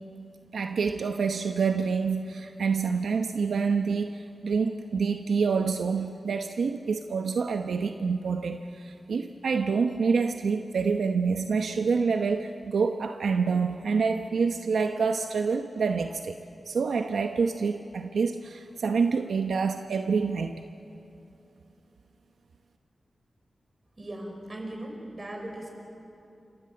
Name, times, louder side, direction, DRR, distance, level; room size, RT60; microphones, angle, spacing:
voice 1, 0.5-16.4 16.7-20.6, right 5 dB, 85° right, 6 dB, 0.9 m, -27 dB
voice 2, 24.0-25.7, right 1 dB, 35° right, 2 dB, 6.1 m, -38 dB
28.5 x 26.0 x 7.8 m, 2.8 s
wide cardioid pair, 75°, 0 cm